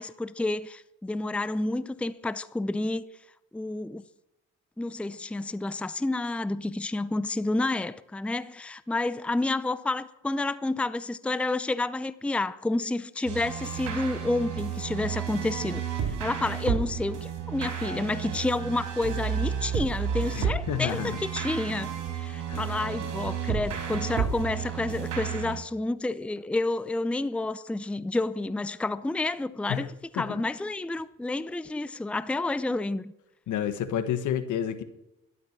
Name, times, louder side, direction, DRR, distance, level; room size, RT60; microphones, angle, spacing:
voice 1, 0.0-3.0 3.5-4.0 4.8-29.9 30.1-33.1, left 2 dB, 5° left, 0.5 m, -30 dB
sound 1, 13.3-25.6, right 7 dB, 85° right, 4.0 m, -32 dB
voice 2, 20.3-21.2 22.5-22.7 29.7-30.4 33.5-34.8, left 9 dB, 80° left, 1.4 m, -30 dB
12.5 x 11.0 x 6.0 m
cardioid pair, 90°, 30 cm